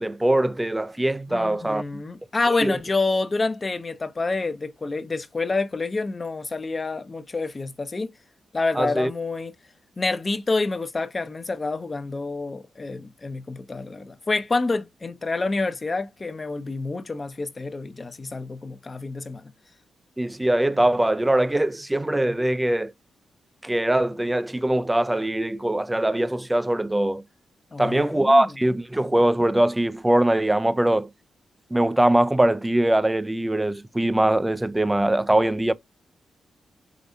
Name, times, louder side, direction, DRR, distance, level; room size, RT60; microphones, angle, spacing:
voice 1, 0.0-2.0 2.6-2.8 8.8-9.1 20.2-22.9 23.6-27.2 27.8-31.1 31.7-35.7, right 1 dB, 15° right, 0.5 m, -22 dB
voice 2, 1.3-8.1 8.5-9.5 10.0-19.4 27.7-28.5, left 3 dB, 35° left, 0.7 m, -28 dB
5.1 x 3.9 x 2.6 m
supercardioid pair, 45°, 0 cm